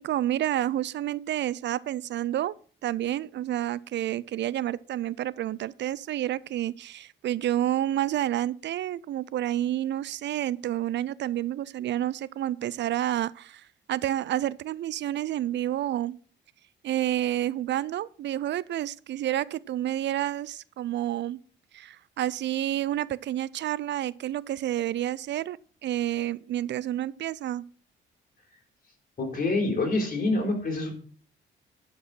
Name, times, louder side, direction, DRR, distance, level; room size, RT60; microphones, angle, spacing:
voice 1, 0.0-2.5 2.8-16.2 16.8-21.4 21.7-25.6 25.8-27.6, right 12 dB, 65° right, 0.4 m, -29 dB
voice 2, 29.2-30.9, left 2 dB, 45° left, 4.2 m, -26 dB
11.0 x 5.4 x 6.0 m
cardioid pair, 90°, 20 cm